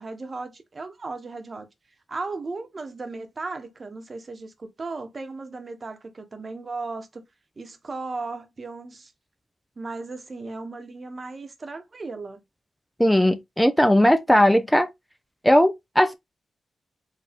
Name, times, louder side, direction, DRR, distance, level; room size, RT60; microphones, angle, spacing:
voice 1, 0.0-1.7 2.1-7.2 7.6-9.1 9.8-12.4, right 3 dB, 45° right, 1.2 m, -36 dB
voice 2, 13.0-14.9 15.4-16.1, equal, 5° left, 0.6 m, -18 dB
4.7 x 2.6 x 3.5 m
supercardioid pair, 50°, 0 cm